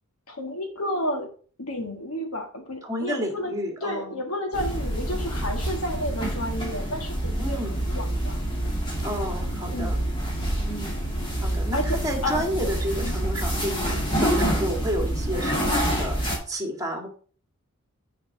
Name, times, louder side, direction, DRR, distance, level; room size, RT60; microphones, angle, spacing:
voice 1, 0.3-1.3 1.6-3.5 3.8-8.4 9.7-10.0 11.7-12.7 13.0-13.1, left 1 dB, 85° left, 3 dB, 1.7 m, -31 dB
voice 2, 2.8-4.2 7.4-7.8 9.0-10.0 10.7-11.0 11.4-17.1, equal, 15° right, 2 dB, 1.9 m, -31 dB
sound 1, 4.5-16.4, right 1 dB, 25° left, 2.6 m, -27 dB
7.4 x 4.9 x 5.4 m, 0.42 s
head